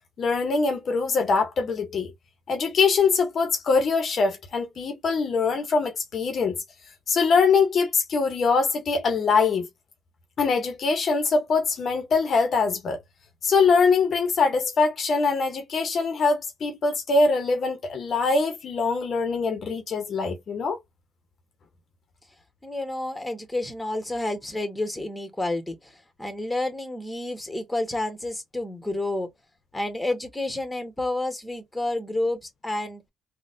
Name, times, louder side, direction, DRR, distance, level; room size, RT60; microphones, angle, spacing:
voice 1, 0.2-2.1 2.5-6.6 7.1-9.7 10.4-13.0 13.4-20.8, left 4 dB, 55° left, 0.8 m, -23 dB
voice 2, 22.6-29.3 29.7-33.0, left 2 dB, 10° left, 1.2 m, -30 dB
3.8 x 2.2 x 2.6 m
cardioid pair, 90°, 0 cm